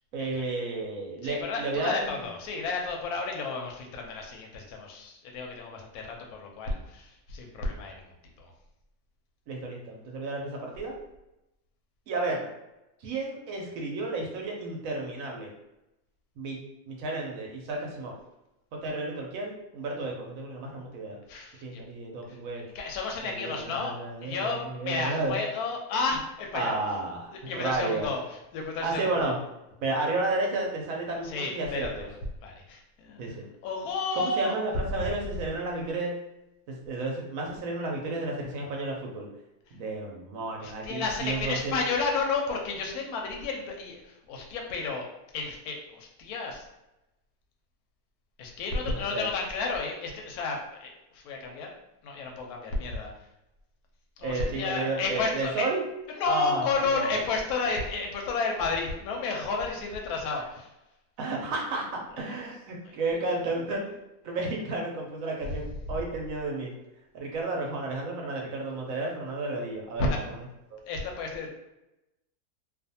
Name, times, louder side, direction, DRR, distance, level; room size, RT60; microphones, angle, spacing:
voice 1, 0.1-2.1 9.5-10.9 12.1-12.5 13.0-15.5 16.4-16.6 16.9-18.1 18.8-21.2 21.6-22.6 23.2-25.4 26.5-28.1 28.8-29.4 29.8-32.1 33.2-33.4 34.1-36.2 36.7-39.3 39.7-41.8 48.9-49.3 54.2-55.8 56.3-57.2 61.2-63.8 64.2-66.7 67.1-70.4 70.7-70.8, right 2 dB, 70° right, 0 dB, 0.9 m, -32 dB
voice 2, 1.2-8.0 8.4-8.5 21.3-21.8 22.7-26.8 27.5-28.2 28.5-29.3 31.2-31.9 32.4-34.6 40.6-45.0 45.3-46.6 48.4-50.9 51.1-51.7 52.0-53.1 54.2-55.7 56.1-60.7 62.2-62.4 62.9-63.0 70.0-70.2 70.9-71.5, left 4 dB, 75° left, 1 dB, 1.0 m, -32 dB
2.5 x 2.4 x 2.6 m, 0.93 s
omnidirectional pair, 1.7 m